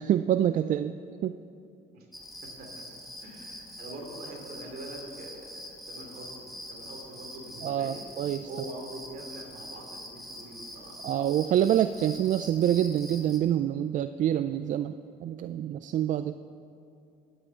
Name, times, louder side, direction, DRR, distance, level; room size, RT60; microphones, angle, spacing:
voice 1, 0.0-1.4 7.6-8.5 11.0-15.0 15.2-16.4, right 10 dB, 50° right, 11 dB, 0.4 m, -26 dB
sound 1, 2.1-13.4, equal, ahead, 1.9 m, -44 dB
voice 2, 2.4-2.9 3.2-8.0 8.4-11.0, right 2 dB, 65° right, 1 dB, 2.8 m, -44 dB
11.0 x 8.9 x 7.6 m, 2.6 s
cardioid pair, 110°, 17 cm